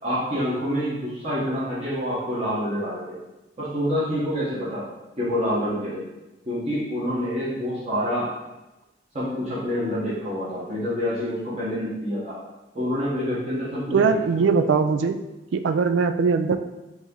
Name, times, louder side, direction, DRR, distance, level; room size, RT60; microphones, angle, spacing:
voice 1, 0.0-3.2 3.6-4.9 5.2-6.1 6.4-8.3 9.1-12.4 12.7-14.5, equal, 35° right, -10 dB, 1.1 m, -27 dB
voice 2, 13.9-15.2 15.5-16.6, right 5 dB, 90° right, 10 dB, 0.3 m, -20 dB
4.6 x 2.9 x 3.8 m, 1.0 s
head